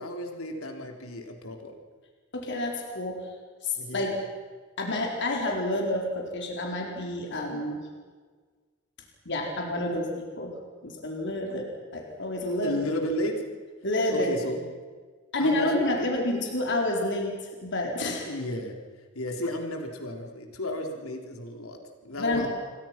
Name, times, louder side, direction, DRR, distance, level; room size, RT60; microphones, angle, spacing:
voice 1, 0.0-1.7 3.8-4.2 11.5-11.6 12.6-13.4 14.1-14.7 15.4-16.1 16.3-16.5 18.2-18.7 19.2-22.5, left 1 dB, 85° left, 3 dB, 3.9 m, -33 dB
voice 2, 2.3-3.3 3.6-4.1 4.8-7.8 9.3-10.5 10.8-11.6 11.9-12.8 13.8-14.3 15.3-17.3 17.6-18.3 22.2-22.5, left 1 dB, 60° left, 0 dB, 4.4 m, -29 dB
28.0 x 23.5 x 6.1 m, 1.5 s
head